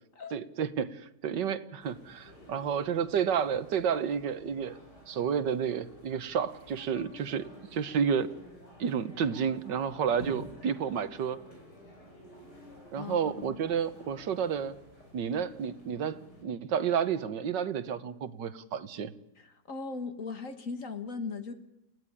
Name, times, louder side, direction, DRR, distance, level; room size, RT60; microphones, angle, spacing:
voice 1, 0.3-4.8 5.1-8.3 8.8-11.4 12.9-14.8 15.1-19.1, right 7 dB, 80° right, 12 dB, 1.8 m, -31 dB
sound 1, 1.8-16.4, equal, 70° left, 6.8 m, -52 dB
voice 2, 13.0-13.5 19.7-21.5, left 4 dB, 50° left, 8 dB, 2.1 m, -38 dB
30.0 x 16.0 x 9.9 m, 0.87 s
omnidirectional pair, 1.9 m